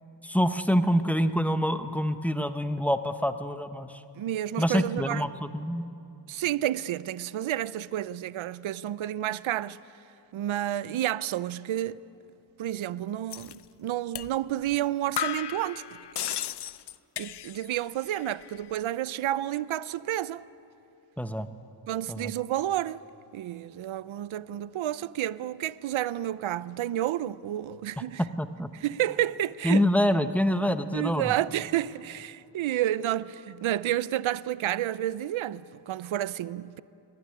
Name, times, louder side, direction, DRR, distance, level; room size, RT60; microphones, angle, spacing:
voice 1, 0.2-4.0 4.6-5.9 21.2-21.5 22.1-22.3 28.2-28.7 29.6-31.3, equal, 5° left, 0.8 m, -26 dB
voice 2, 4.2-5.2 6.3-9.8 10.3-12.0 12.6-13.5 13.8-15.8 17.2-20.5 21.9-23.0 23.3-28.2 28.8-29.8 30.9-36.8, right 13 dB, 90° right, 0.6 m, -30 dB
sound 1, 13.3-13.6 14.2-14.3 14.7-14.8 15.2-17.8 18.1-18.7, left 10 dB, 60° left, 0.6 m, -35 dB
23.5 x 16.0 x 9.8 m
wide cardioid pair, 110°, 46 cm